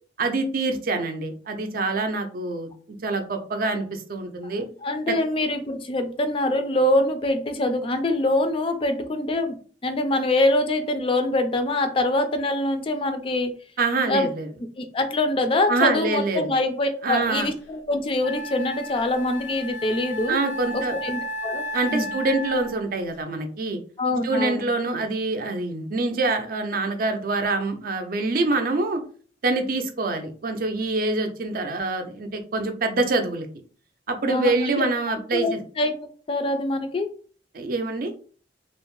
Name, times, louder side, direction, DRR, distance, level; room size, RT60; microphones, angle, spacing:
voice 1, 0.2-4.7 5.1-5.2 13.8-14.5 15.7-16.5 17.0-17.5 20.3-21.0 21.7-23.8 24.2-29.0 29.4-33.5 34.1-35.6 37.5-38.1, right 3 dB, 55° right, 6 dB, 0.5 m, -25 dB
voice 2, 4.8-9.6 9.8-13.5 14.1-14.3 14.8-20.4 20.7-21.6 21.9-22.1 24.0-24.6 34.3-34.9 35.3-37.1, left 2 dB, 30° left, 8 dB, 0.3 m, -24 dB
Wind instrument woodwind instrument, 17.6-17.7 18.2-22.9, left 1 dB, 75° left, 0.6 m, -34 dB
2.5 x 2.0 x 3.0 m, 0.42 s
head